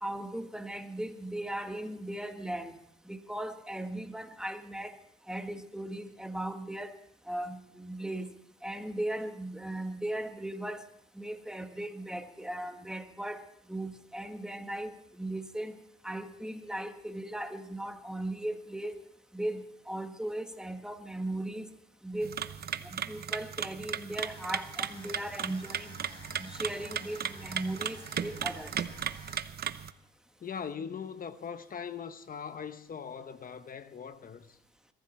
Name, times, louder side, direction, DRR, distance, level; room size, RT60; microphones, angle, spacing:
voice 1, 0.0-2.8 3.1-5.0 5.3-7.0 7.3-8.3 8.6-10.8 11.2-15.8 16.0-19.0 19.3-21.7 22.0-22.4 22.8-25.9 26.4-28.7, right 1 dB, 5° right, 1.7 m, -37 dB
sound 1, 22.2-29.9, right 8 dB, 55° right, 0.9 m, -36 dB
sound 2, 24.1-29.7, left 2 dB, 25° left, 3.2 m, -51 dB
voice 2, 30.4-34.6, left 7 dB, 45° left, 1.0 m, -40 dB
22.5 x 14.5 x 4.4 m
cardioid pair, 90°, 20 cm